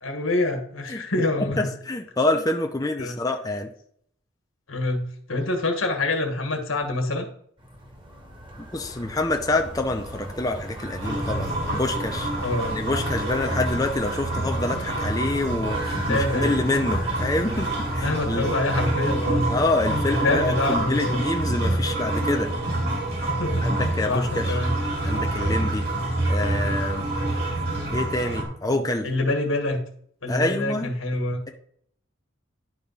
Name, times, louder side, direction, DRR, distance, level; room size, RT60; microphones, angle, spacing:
voice 1, 0.0-1.7 2.3-2.4 3.0-3.2 4.7-7.3 12.4-12.7 16.1-16.7 17.9-19.5 19.8-21.2 23.3-24.7 28.7-29.8 30.2-31.4, left 2 dB, 80° left, 4 dB, 1.5 m, -26 dB
voice 2, 1.9-3.7 8.6-12.3 12.7-18.5 19.5-22.5 23.6-24.6 25.0-25.8 26.3-27.1 27.9-29.1 30.3-30.9, left 2 dB, 20° left, 3 dB, 0.6 m, -27 dB
sound 1, 7.6-18.6, right 1 dB, 25° right, 1.4 m, -37 dB
sound 2, 11.0-28.4, right 1 dB, 55° right, 2.8 m, -27 dB
10.5 x 3.5 x 5.4 m, 0.65 s
head